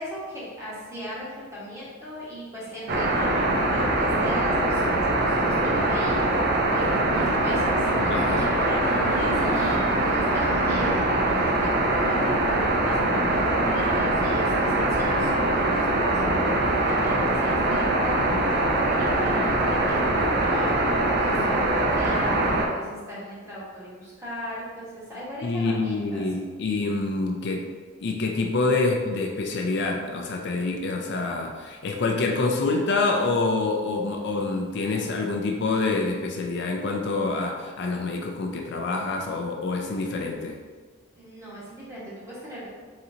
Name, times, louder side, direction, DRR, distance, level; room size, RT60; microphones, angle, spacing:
voice 1, 0.0-26.2 41.1-42.7, equal, 15° right, -8 dB, 1.3 m, -38 dB
sound 1, 2.9-22.7, right 2 dB, 50° right, 0.5 m, -23 dB
sound 2, 6.8-11.6, equal, 80° right, 0.9 m, -37 dB
voice 2, 8.1-8.5 25.4-27.7 28.0-40.6, left 3 dB, 55° left, 1 dB, 0.4 m, -26 dB
4.3 x 3.8 x 2.7 m, 1.5 s
head